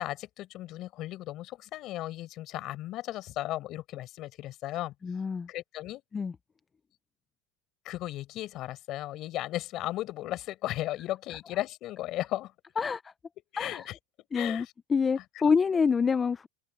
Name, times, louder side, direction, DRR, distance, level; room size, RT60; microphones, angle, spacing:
voice 1, 0.0-4.9 5.5-6.0 7.8-12.5 13.5-14.0 14.3-14.7, left 15 dB, 35° left, 4.5 m, -35 dB
voice 2, 5.0-5.5 6.1-6.3 12.8-13.1 13.6-13.9 14.3-16.5, left 5 dB, 15° left, 0.3 m, -27 dB
open air
supercardioid pair, 170°, 0 cm